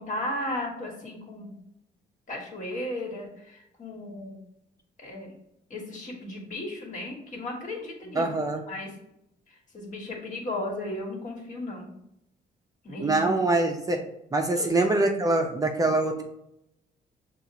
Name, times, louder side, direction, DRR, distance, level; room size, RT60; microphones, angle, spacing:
voice 1, 0.0-1.5 2.3-4.4 5.0-5.3 5.7-8.3 8.7-8.9 9.5-11.9 12.8-13.4 14.5-14.7, left 1 dB, 45° left, -1 dB, 1.5 m, -35 dB
voice 2, 8.2-8.6 13.0-14.0 14.3-16.2, right 2 dB, 20° right, 2 dB, 0.5 m, -24 dB
6.4 x 2.4 x 2.9 m, 0.80 s
cardioid pair, 80°, 18 cm